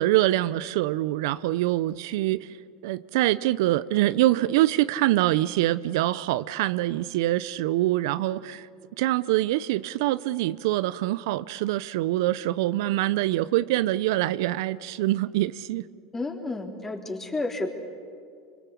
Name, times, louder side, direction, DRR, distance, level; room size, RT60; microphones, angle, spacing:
voice 1, 0.0-2.5 2.8-8.7 9.0-15.8, right 16 dB, 70° right, 0.6 m, -24 dB
voice 2, 16.1-17.7, left 2 dB, 20° left, 3.7 m, -31 dB
25.0 x 25.0 x 8.5 m
hypercardioid pair, 90°, 2 cm